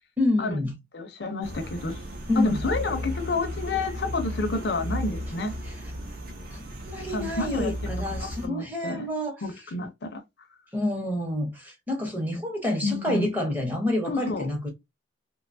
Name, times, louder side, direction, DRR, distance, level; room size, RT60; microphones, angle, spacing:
voice 1, 0.2-0.7 2.3-2.7 5.6-5.8 6.5-9.4 10.7-14.7, left 1 dB, 10° right, 0.7 m, -28 dB
voice 2, 0.9-2.0 2.4-5.6 7.1-9.1 9.4-10.2 12.8-13.3 14.1-14.7, left 3 dB, 55° left, 0.5 m, -30 dB
sound 1, 1.4-8.5, equal, 45° right, 0.6 m, -35 dB
2.7 x 2.2 x 2.5 m
head